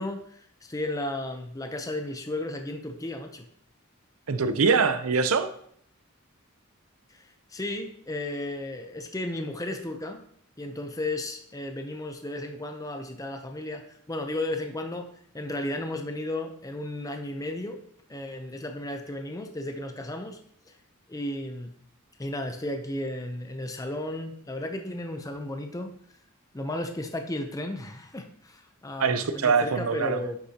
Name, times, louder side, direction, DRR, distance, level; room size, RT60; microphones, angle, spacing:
voice 1, 0.0-3.5 7.1-10.2 10.6-15.1 15.3-17.8 18.1-20.4 20.7-20.8 21.1-21.7 22.2-25.9 26.5-30.4, left 1 dB, 15° left, 0.6 m, -34 dB
voice 2, 4.3-5.5 29.0-30.2, right 5 dB, 80° right, 0.7 m, -23 dB
9.4 x 6.7 x 2.9 m
head